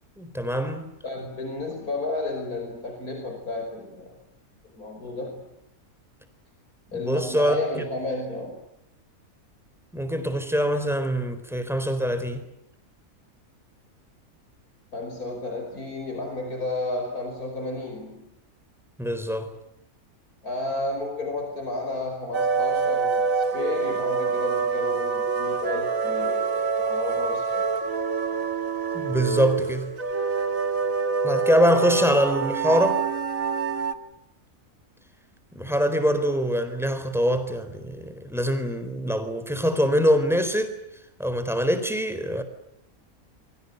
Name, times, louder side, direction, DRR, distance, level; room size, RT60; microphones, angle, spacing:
voice 1, 0.2-0.9 6.9-7.9 9.9-12.5 19.0-19.5 28.9-29.9 31.2-33.0 35.5-40.8 41.2-42.4, equal, ahead, 4.1 m, -24 dB
voice 2, 1.0-4.2 4.6-5.4 6.9-8.6 14.9-18.3 20.4-27.7, left 2 dB, 85° left, 5.8 m, -32 dB
sound 1, 22.3-33.9, right 5 dB, 70° right, 1.9 m, -26 dB
28.5 x 24.5 x 8.1 m
omnidirectional pair, 1.5 m